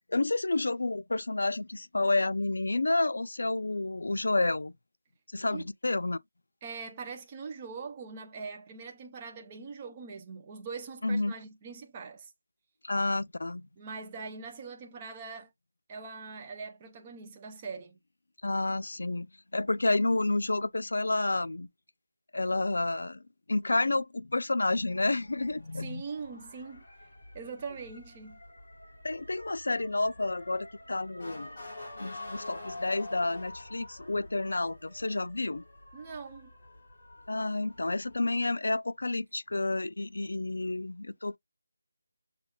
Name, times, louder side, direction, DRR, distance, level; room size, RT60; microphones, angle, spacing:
voice 1, 0.1-4.7 5.3-6.2 11.0-11.3 12.8-13.7 18.4-21.7 22.3-23.2 23.5-26.0 29.0-31.6 32.0-35.6 37.3-41.4, left 2 dB, 70° left, 0.4 m, -30 dB
voice 2, 6.6-12.3 13.8-15.5 15.9-18.0 25.7-27.1 27.3-28.4 35.9-36.5, right 5 dB, 15° right, 0.4 m, -42 dB
Motor vehicle (road) / Siren, 24.7-38.2, left 2 dB, 25° left, 2.6 m, -48 dB
6.7 x 2.4 x 2.2 m
figure-of-eight pair, 175°, 0 cm